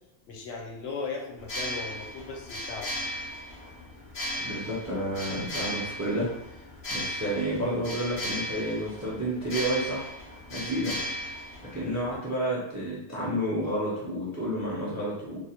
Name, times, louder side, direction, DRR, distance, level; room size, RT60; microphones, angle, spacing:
voice 1, 0.3-2.9, left 4 dB, 90° left, 1 dB, 0.9 m, -37 dB
sound 1, 1.4-12.2, equal, 40° left, 0.4 m, -36 dB
voice 2, 4.4-6.6 6.9-10.2 10.5-11.0 11.6-15.4, right 1 dB, 30° right, -6 dB, 0.3 m, -30 dB
2.3 x 2.0 x 2.7 m, 0.83 s
omnidirectional pair, 1.1 m